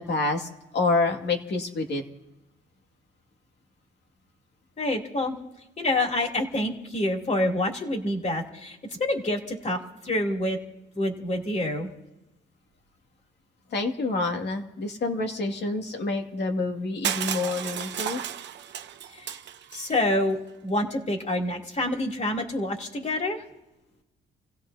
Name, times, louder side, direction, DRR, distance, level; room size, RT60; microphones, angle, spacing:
voice 1, 0.0-2.0 13.7-18.2, left 3 dB, 60° left, 4 dB, 2.3 m, -28 dB
voice 2, 4.8-5.4 5.8-10.6 10.9-11.9 19.1-19.3 19.7-20.4 20.6-23.4, left 1 dB, 35° left, 1 dB, 3.1 m, -27 dB
Crushing, 17.0-20.0, right 9 dB, 65° right, 0.9 m, -33 dB
30.0 x 17.0 x 2.8 m, 0.98 s
cardioid pair, 90°, 20 cm